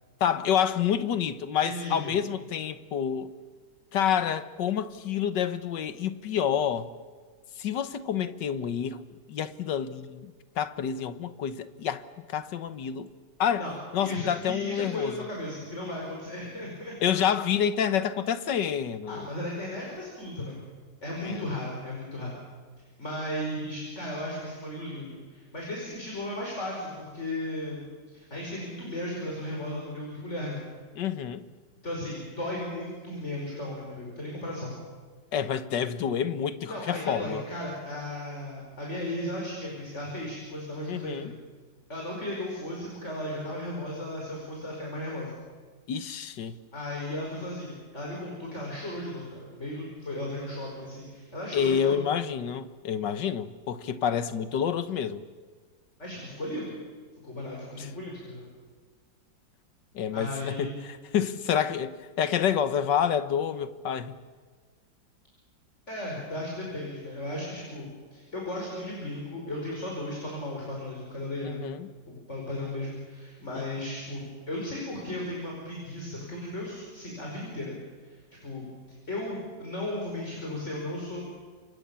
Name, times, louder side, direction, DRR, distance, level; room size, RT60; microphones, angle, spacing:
voice 1, 0.2-3.3 3.9-6.9 7.6-9.0 9.3-12.0 12.3-13.1 13.4-13.7 13.9-15.2 17.0-19.3 21.2-21.5 31.0-31.4 35.3-37.4 40.9-41.3 45.9-46.6 51.5-55.2 57.8-57.9 60.0-64.2 71.4-71.9 73.6-73.8, left 8 dB, 70° left, 1.7 m, -28 dB
voice 2, 1.6-2.1 13.6-13.7 14.0-17.4 19.1-20.6 21.0-22.4 22.8-27.8 28.1-30.6 31.8-34.7 36.7-41.3 41.9-45.3 46.7-52.0 56.0-56.8 57.2-58.4 60.1-60.7 65.9-71.6 72.1-77.7 78.0-78.2 78.4-81.2, left 1 dB, 35° left, 5.6 m, -35 dB
28.5 x 25.0 x 7.1 m
omnidirectional pair, 2.0 m